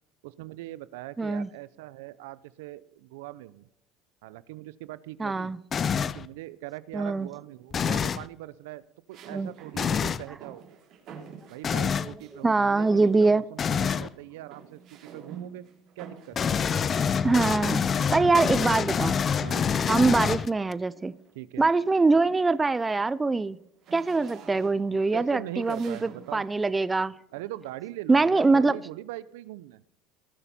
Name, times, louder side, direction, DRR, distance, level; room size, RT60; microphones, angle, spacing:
voice 1, 0.2-3.7 4.2-5.5 6.1-8.8 9.1-10.6 11.5-15.6 16.0-16.5 18.1-18.3 19.4-19.7 21.3-21.7 25.1-26.4 27.3-29.8, right 16 dB, 80° right, 0.6 m, -41 dB
voice 2, 1.2-1.5 5.2-5.6 6.9-7.3 9.3-9.5 12.3-13.4 17.2-17.8 18.1-19.2 19.9-21.1 21.6-23.6 23.9-27.1 28.1-28.8, right 3 dB, 15° right, 0.5 m, -23 dB
sound 1, 5.7-6.3 7.7-8.3 9.8-10.2 11.6-12.1 13.6-14.1 16.3-20.7, left 7 dB, 35° left, 0.5 m, -26 dB
sound 2, 7.2-7.8 9.1-12.4 12.8-13.4 13.6-18.1 19.2-20.6 21.1-21.3 21.7-26.5, right 7 dB, 55° right, 3.4 m, -49 dB
19.0 x 7.0 x 4.3 m
supercardioid pair, 100°, 0 cm